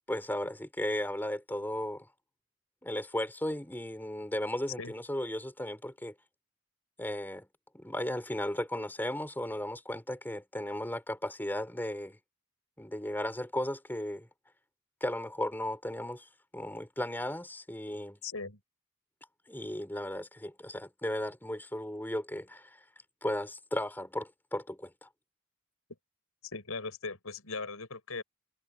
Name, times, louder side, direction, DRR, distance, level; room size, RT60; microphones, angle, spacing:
voice 1, 0.1-2.1 2.8-6.1 7.0-7.5 7.7-12.2 12.8-14.3 15.0-18.2 19.5-22.8 23.2-25.1, left 1 dB, 10° left, 4.3 m, -35 dB
voice 2, 18.2-18.6 26.5-28.2, left 4 dB, 90° left, 5.6 m, -39 dB
head